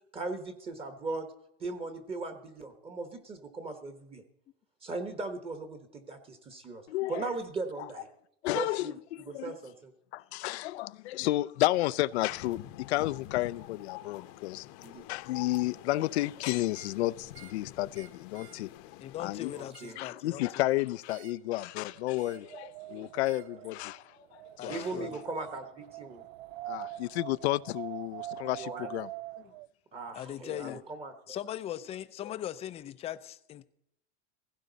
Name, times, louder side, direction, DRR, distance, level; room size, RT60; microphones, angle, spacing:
voice 1, 0.1-1.3 1.6-4.2 4.8-6.8 7.1-8.1 8.5-9.0 9.2-9.9 14.8-15.1 19.5-20.0 24.7-26.2 28.5-28.9 29.9-31.4, right 3 dB, 15° right, 1.2 m, -38 dB
voice 2, 6.9-7.3 7.8-7.9 8.4-9.6 10.1-14.7 15.1-18.7 19.2-19.5 20.0-25.1 26.7-29.1 30.6-30.8 32.2-32.3, left 17 dB, 90° left, 0.6 m, -32 dB
sound 1, 12.1-19.7, left 14 dB, 45° left, 0.9 m, -47 dB
sound 2, 16.6-17.0 17.3-17.6 17.9-18.6 19.5-20.0 21.1-21.5 22.1-22.5 23.2-23.5 24.7-24.9, right 9 dB, 85° right, 1.3 m, -55 dB
voice 3, 19.0-20.5 24.6-25.1 29.4-29.5 30.1-30.8 31.3-33.6, left 11 dB, 20° left, 0.5 m, -40 dB
Wind, 21.7-29.7, right 15 dB, 65° right, 0.6 m, -44 dB
16.5 x 16.0 x 4.0 m
supercardioid pair, 155°, 32 cm